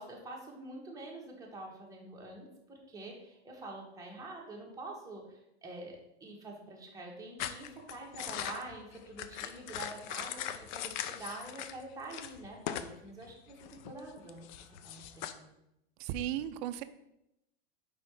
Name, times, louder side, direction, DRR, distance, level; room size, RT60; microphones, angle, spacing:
voice 1, 0.0-10.4 10.7-14.5 14.8-15.5, right 2 dB, 10° right, -2 dB, 1.5 m, -46 dB
sound 1, 7.4-11.8 12.1-13.0 13.2-15.3, left 10 dB, 45° left, 0.5 m, -40 dB
voice 2, 16.0-16.8, right 11 dB, 40° right, 11 dB, 0.5 m, -35 dB
5.0 x 4.1 x 4.7 m, 0.85 s
hypercardioid pair, 115°, 33 cm